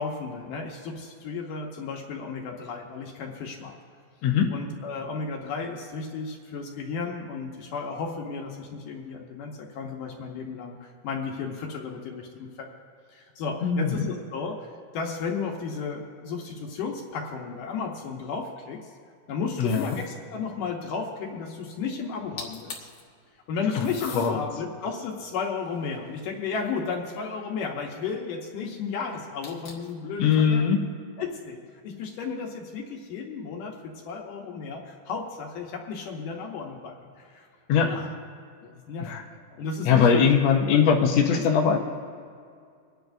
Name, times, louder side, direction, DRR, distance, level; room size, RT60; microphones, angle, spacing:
voice 1, 0.0-3.8 4.5-12.7 13.1-14.7 14.9-18.9 19.3-22.9 23.5-30.6 31.2-31.6 31.8-37.5 37.8-38.1 38.6-40.5 40.7-40.8 41.3-41.6, left 5 dB, 70° left, 0 dB, 2.4 m, -34 dB
voice 2, 13.6-14.1 19.6-19.9 23.7-23.9 24.1-24.4 30.2-30.8 37.7-37.9 39.0-39.2 39.8-41.8, left 7 dB, 90° left, 3 dB, 1.5 m, -21 dB
sound 1, 19.6-20.2 22.1-22.2 22.4-23.0 23.8-24.3 25.0-26.5 29.4-30.0, left 4 dB, 55° left, 1.5 m, -42 dB
26.5 x 10.5 x 2.6 m, 2.2 s
omnidirectional pair, 4.2 m